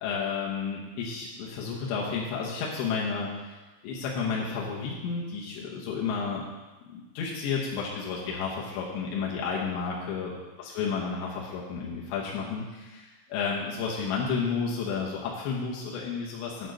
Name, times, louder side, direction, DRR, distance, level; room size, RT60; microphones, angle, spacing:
voice 1, 0.0-3.3 3.8-6.4 6.9-10.3 10.6-16.7, left 5 dB, 75° left, -4 dB, 3.1 m, -31 dB
9.0 x 4.4 x 6.3 m, 1.2 s
omnidirectional pair, 5.4 m